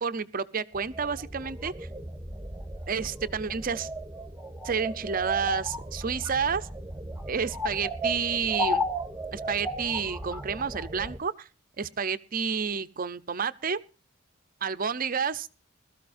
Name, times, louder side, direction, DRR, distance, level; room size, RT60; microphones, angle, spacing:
voice 1, 0.0-1.9 2.9-3.9 4.6-6.7 7.3-8.9 9.3-11.5 11.8-13.8 14.6-15.6, right 6 dB, 45° right, 0.6 m, -30 dB
sound 1, 0.7-11.2, equal, 10° right, 1.0 m, -35 dB
21.0 x 13.5 x 2.6 m
head